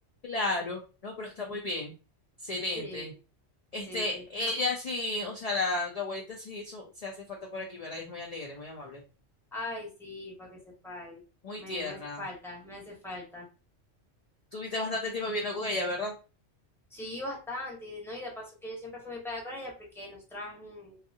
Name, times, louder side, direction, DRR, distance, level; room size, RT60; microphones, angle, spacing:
voice 1, 0.2-1.9 2.4-3.1 3.7-7.1 7.5-9.0 11.4-12.2 14.5-16.2, left 2 dB, 55° left, 0 dB, 0.4 m, -33 dB
voice 2, 2.7-3.1 3.9-4.2 9.5-11.2 11.6-13.5 16.9-21.0, left 1 dB, ahead, -2 dB, 0.7 m, -40 dB
2.6 x 2.4 x 2.6 m, 0.33 s
omnidirectional pair, 1.2 m